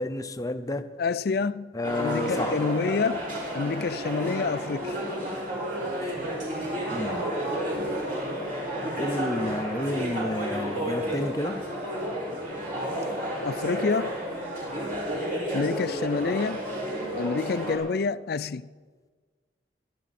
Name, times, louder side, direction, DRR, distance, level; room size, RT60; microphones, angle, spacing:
voice 1, 0.0-0.9 1.7-2.5 6.9-7.3 9.0-11.6, left 1 dB, 20° left, 0.7 m, -30 dB
voice 2, 1.0-1.7 2.0-3.2 3.5-4.9 13.4-14.2 15.5-16.6 17.2-18.7, left 4 dB, 60° left, 0.4 m, -27 dB
sound 1, 1.8-17.8, right 1 dB, 50° right, 5.3 m, -31 dB
23.0 x 12.0 x 4.2 m
head